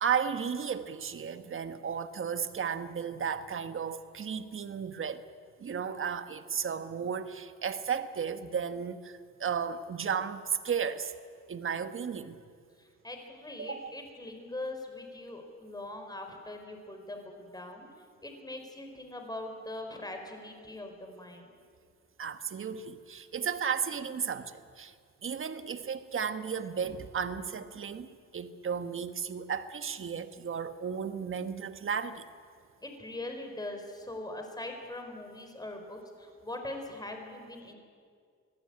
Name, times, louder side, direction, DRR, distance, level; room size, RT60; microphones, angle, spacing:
voice 1, 0.0-5.3 5.6-11.1 11.5-12.4 13.6-13.9 22.2-24.9 25.2-32.2, right 7 dB, 45° right, 10 dB, 1.5 m, -34 dB
voice 2, 12.8-17.9 18.2-21.5 32.8-37.8, left 2 dB, 15° left, 4 dB, 4.6 m, -41 dB
24.5 x 16.0 x 8.8 m, 2.1 s
cardioid pair, 90°, 30 cm